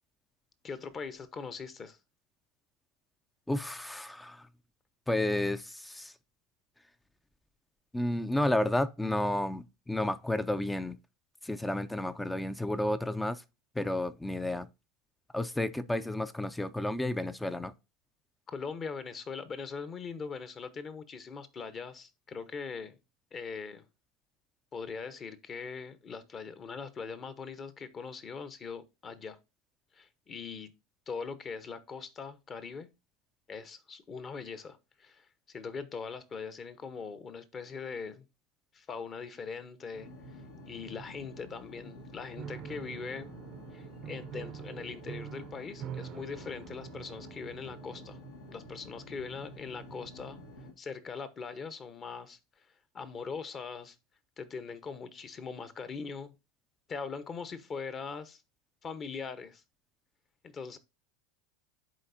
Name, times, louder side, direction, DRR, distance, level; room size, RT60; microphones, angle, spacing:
voice 1, 0.6-2.0 18.5-23.0 23.3-23.9 24.7-29.4 29.9-30.7 31.1-32.9 33.5-38.3 38.7-43.3 43.7-48.2 48.5-50.4 50.8-52.4 52.9-54.0 54.4-56.3 56.9-58.4 58.8-59.6 60.4-60.8, left 5 dB, 30° left, 0.9 m, -41 dB
voice 2, 3.5-4.5 5.1-6.1 7.9-11.0 11.4-13.4 13.8-14.7 15.3-17.7, left 1 dB, 5° left, 0.4 m, -31 dB
sound 1, 39.9-50.7, equal, 80° left, 1.5 m, -49 dB
Piano, 42.4-48.3, right 9 dB, 45° right, 0.5 m, -45 dB
10.5 x 4.1 x 2.6 m
hypercardioid pair, 95°, 0 cm